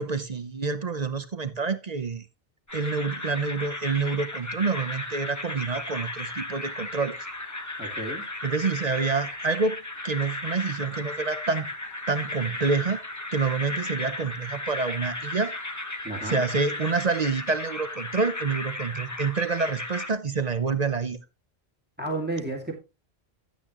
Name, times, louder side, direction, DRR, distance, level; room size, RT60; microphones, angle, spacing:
voice 1, 0.0-2.3 2.7-7.2 8.4-11.7 12.1-13.0 13.3-15.5 16.2-21.2, right 4 dB, 45° right, 0.8 m, -27 dB
sound 1, 2.7-20.1, left 2 dB, 15° left, 1.2 m, -35 dB
voice 2, 7.8-8.2 16.0-16.4 22.0-22.7, right 2 dB, 10° right, 2.3 m, -32 dB
12.0 x 8.6 x 3.0 m
omnidirectional pair, 1.1 m